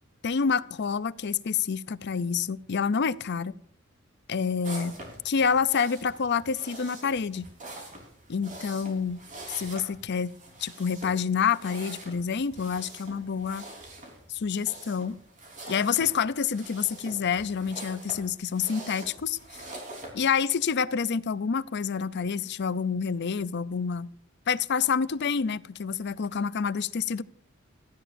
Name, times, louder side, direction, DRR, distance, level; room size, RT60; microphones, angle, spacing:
voice 1, 0.2-3.5 4.3-5.0 5.2-7.5 8.3-13.7 14.3-15.2 15.7-19.4 20.1-24.1 24.5-27.2, left 6 dB, 55° left, 0.5 m, -28 dB
sound 1, 4.6-20.1, right 2 dB, 40° right, 4.0 m, -44 dB
17.0 x 13.0 x 2.6 m
head